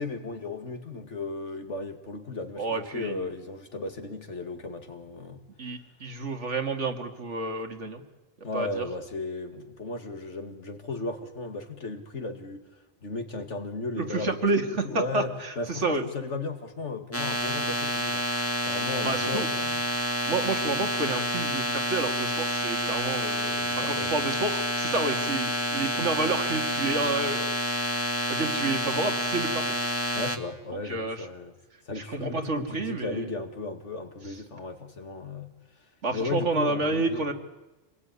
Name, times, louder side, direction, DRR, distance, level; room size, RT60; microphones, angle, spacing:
voice 1, 0.0-5.5 8.4-12.6 13.0-19.9 20.3-20.4 23.6-24.1 30.1-31.6 31.8-35.5 35.8-37.3, left 3 dB, 70° left, 7 dB, 2.5 m, -35 dB
voice 2, 2.6-3.3 5.6-8.0 8.5-8.9 14.0-15.2 15.7-16.0 19.0-19.5 20.3-27.5 28.3-29.7 30.9-31.2 32.0-33.2 36.0-37.3, right 3 dB, 70° right, 5 dB, 2.6 m, -29 dB
sound 1, 17.1-30.4, equal, 10° left, 2.0 m, -28 dB
26.0 x 20.5 x 9.7 m, 1.1 s
omnidirectional pair, 1.3 m